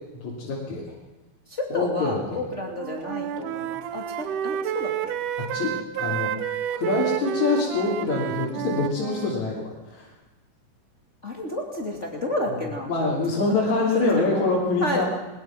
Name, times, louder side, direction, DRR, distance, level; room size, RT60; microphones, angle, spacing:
voice 1, 0.1-1.0 1.7-2.4 5.5-6.3 6.7-10.1 12.9-15.0, left 3 dB, 65° left, -5 dB, 4.5 m, -25 dB
voice 2, 1.5-5.1 11.2-12.9 13.3-14.5 14.8-15.0, left 1 dB, 25° left, 0 dB, 2.7 m, -31 dB
Wind instrument woodwind instrument, 2.7-9.4, right 10 dB, 85° right, 2.5 m, -30 dB
21.5 x 20.5 x 6.0 m, 1.1 s
omnidirectional pair, 3.6 m